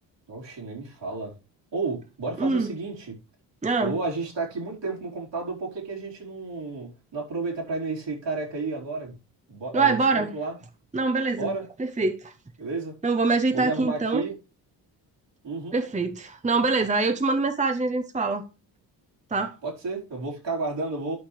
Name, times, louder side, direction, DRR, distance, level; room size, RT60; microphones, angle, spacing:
voice 1, 0.3-1.3 1.7-3.1 3.8-9.2 9.5-10.6 11.4-11.6 12.6-12.9 13.5-14.3 15.4-15.8 19.6-21.2, right 3 dB, 60° right, 4.5 m, -31 dB
voice 2, 2.4-2.7 3.6-3.9 9.7-10.3 10.9-11.5 11.8-12.3 13.0-14.2 15.7-18.4 19.3-19.5, right 3 dB, 15° right, 1.0 m, -24 dB
11.5 x 5.7 x 3.2 m
hypercardioid pair, 45°, 50 cm